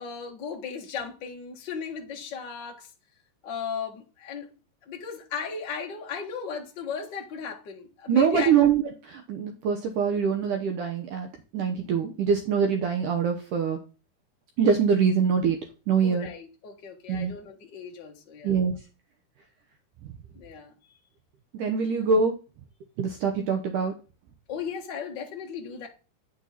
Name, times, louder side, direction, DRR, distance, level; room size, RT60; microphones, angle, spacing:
voice 1, 0.0-2.9 3.4-4.5 4.9-8.7 16.0-18.6 20.3-20.7 24.5-25.9, left 6 dB, 70° left, 1.0 m, -36 dB
voice 2, 8.1-11.3 11.5-13.8 14.6-15.6 15.9-16.3 17.1-17.3 18.4-18.8 21.6-22.3 23.0-23.9, right 6 dB, 70° right, 2.1 m, -24 dB
9.0 x 6.6 x 4.2 m
omnidirectional pair, 4.6 m